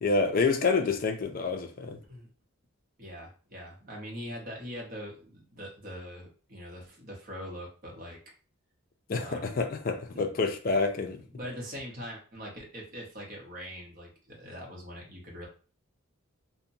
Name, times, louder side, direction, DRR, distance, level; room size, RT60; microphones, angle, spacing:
voice 1, 0.0-2.0 9.1-11.2, left 4 dB, 40° left, 0.4 m, -28 dB
voice 2, 3.0-8.2 9.2-9.6 10.1-10.2 11.3-15.5, equal, 40° right, 0.9 m, -42 dB
2.8 x 2.1 x 2.5 m
head